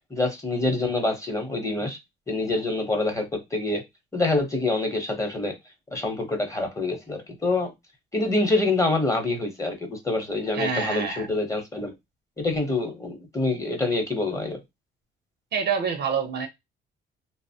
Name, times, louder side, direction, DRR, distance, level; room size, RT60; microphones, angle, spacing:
voice 1, 0.1-2.0 2.3-3.8 4.1-5.5 5.9-7.7 8.1-11.9 12.4-14.6, left 2 dB, 15° left, 0.8 m, -26 dB
voice 2, 10.5-11.3 15.5-16.5, right 6 dB, 60° right, 0.6 m, -27 dB
2.8 x 2.0 x 2.7 m
cardioid pair, 90°, 20 cm